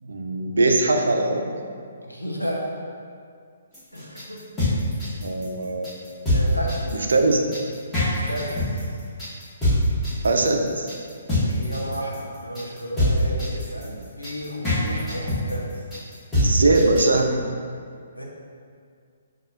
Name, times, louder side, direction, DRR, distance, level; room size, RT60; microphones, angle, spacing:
voice 1, 0.0-1.5 5.2-5.9 6.9-7.4 10.2-10.9 16.3-17.4, right 2 dB, 60° right, 3 dB, 0.4 m, -21 dB
voice 2, 2.0-2.7 3.9-4.4 6.3-7.1 8.1-9.0 11.4-15.7 18.2-18.3, equal, 85° left, -3 dB, 0.7 m, -32 dB
sound 1, 3.7-17.2, left 1 dB, 10° left, 1.1 m, -24 dB
6.0 x 2.7 x 2.4 m, 2.2 s
figure-of-eight pair, 130°, 0 cm